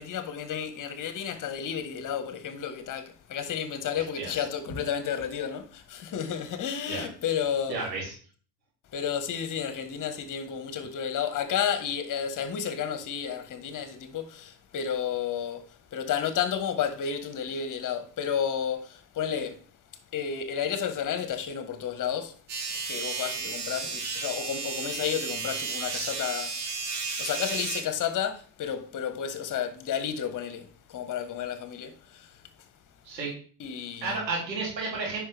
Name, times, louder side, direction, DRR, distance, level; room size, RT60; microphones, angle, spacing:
voice 1, 0.0-7.8 8.9-15.6 15.9-19.6 20.1-22.3 22.8-26.5 26.9-32.4 33.6-34.2, left 8 dB, 40° left, 1.5 m, -32 dB
voice 2, 3.9-4.4 6.9-7.0 7.7-8.1 23.8-23.9 33.0-33.3 34.0-35.2, right 3 dB, 85° right, 3.3 m, -32 dB
sound 1, 22.5-27.8, right 4 dB, 50° right, 3.1 m, -33 dB
9.4 x 5.3 x 3.5 m
figure-of-eight pair, 65°, 49 cm